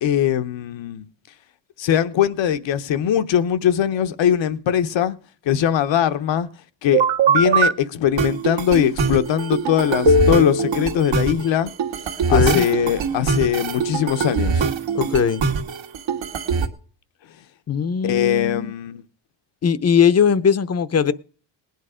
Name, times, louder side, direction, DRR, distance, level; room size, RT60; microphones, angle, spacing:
voice 1, 0.0-1.0 1.8-5.2 5.4-6.5 6.8-11.7 12.3-14.7 18.0-19.0, left 10 dB, 75° left, 1.0 m, -21 dB
sound 1, 6.9-7.7 8.2-16.7, right 4 dB, 70° right, 1.7 m, -21 dB
voice 2, 12.3-12.7 14.9-15.4 17.7-18.7 19.6-21.1, left 7 dB, 35° left, 0.7 m, -19 dB
19.0 x 9.5 x 5.0 m
cardioid pair, 120°, 45 cm